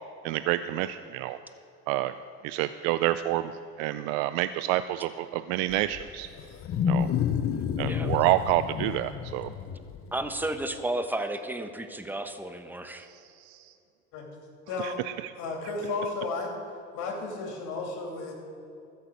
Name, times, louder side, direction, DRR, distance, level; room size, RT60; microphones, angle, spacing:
voice 1, 0.2-1.4 1.9-2.1 2.4-3.5 3.8-6.3 6.9-7.1 7.8-9.5 13.1-13.7 14.8-14.9, right 14 dB, 80° right, 12 dB, 0.5 m, -28 dB
Wild animals, 5.7-10.7, left 8 dB, 45° left, 0.7 m, -30 dB
voice 2, 10.1-13.1, right 1 dB, 5° right, 8 dB, 1.0 m, -32 dB
voice 3, 14.7-15.0 15.3-16.5 16.9-18.3, left 3 dB, 70° left, 0 dB, 2.9 m, -33 dB
14.0 x 6.0 x 8.1 m, 2.6 s
supercardioid pair, 90°, 30 cm